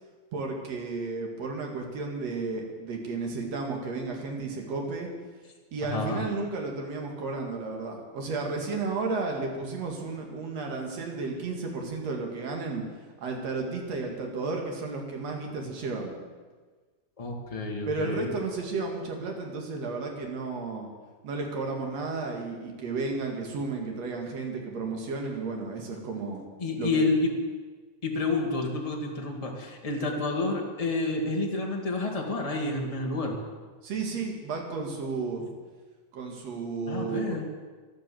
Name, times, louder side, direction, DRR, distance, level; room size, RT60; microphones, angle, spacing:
voice 1, 0.3-5.1 5.7-12.8 13.2-16.2 17.9-20.9 21.2-26.4 26.7-27.1 33.8-35.5 36.1-37.4, right 3 dB, 50° right, 2 dB, 3.0 m, -33 dB
voice 2, 5.8-6.2 17.2-18.3 26.6-27.3 28.0-33.4 36.9-37.4, left 2 dB, 25° left, 0 dB, 0.7 m, -29 dB
12.5 x 11.5 x 7.7 m, 1.4 s
omnidirectional pair, 4.0 m